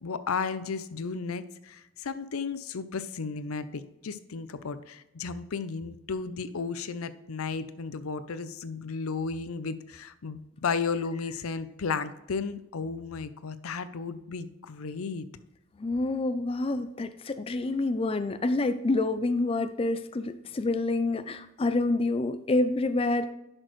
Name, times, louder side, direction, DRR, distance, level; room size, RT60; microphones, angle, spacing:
voice 1, 0.0-15.3, left 5 dB, 85° left, 13 dB, 0.6 m, -34 dB
voice 2, 15.8-23.3, left 2 dB, 25° left, 10 dB, 0.4 m, -27 dB
10.5 x 6.2 x 3.1 m, 0.92 s
head